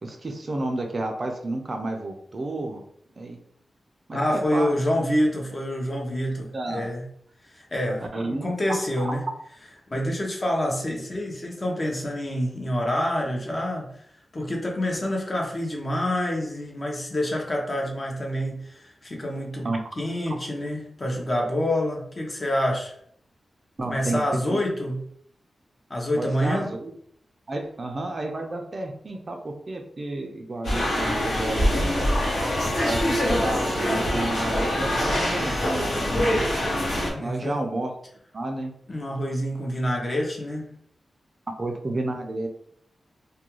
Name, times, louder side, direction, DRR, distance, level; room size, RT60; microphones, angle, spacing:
voice 1, 0.0-2.8 3.2-3.4 4.1-4.7 5.0-5.1 6.5-6.9 8.1-8.5 9.0-9.1 19.6-19.8 23.8-24.6 26.1-26.9 27.5-32.1 32.8-36.5 37.2-37.9 38.3-38.7 41.6-42.5, right 2 dB, 40° right, 3 dB, 0.4 m, -31 dB
voice 2, 4.1-7.0 7.4-9.2 9.9-13.9 14.3-19.7 20.0-23.0 23.9-25.0 25.9-26.7 37.1-37.6 38.9-40.7, equal, 35° left, 0 dB, 0.6 m, -27 dB
sound 1, 30.6-37.1, left 1 dB, 85° left, 1.0 m, -24 dB
2.3 x 2.2 x 2.9 m, 0.65 s
wide cardioid pair, 110°, 0 cm